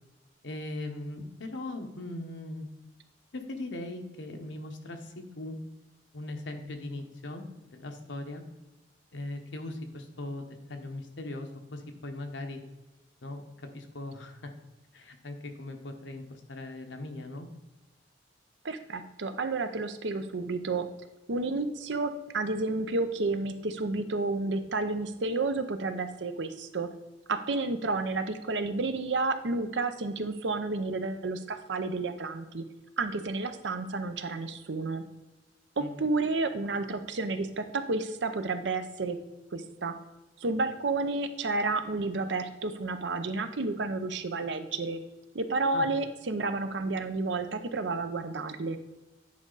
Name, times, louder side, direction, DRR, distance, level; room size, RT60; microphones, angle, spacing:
voice 1, 0.4-2.7 3.3-5.6 6.1-7.4 7.7-8.4 9.1-12.6 13.2-13.4 13.7-14.5 14.9-17.5 35.8-36.0 45.7-45.9, left 2 dB, 80° left, 5 dB, 1.1 m, -39 dB
voice 2, 18.6-20.9 21.3-26.9 27.3-32.6 33.0-35.0 35.8-39.2 39.5-39.9 40.4-45.0 45.3-48.8, right 3 dB, 70° right, 9 dB, 0.7 m, -31 dB
9.6 x 4.9 x 4.0 m, 1.1 s
head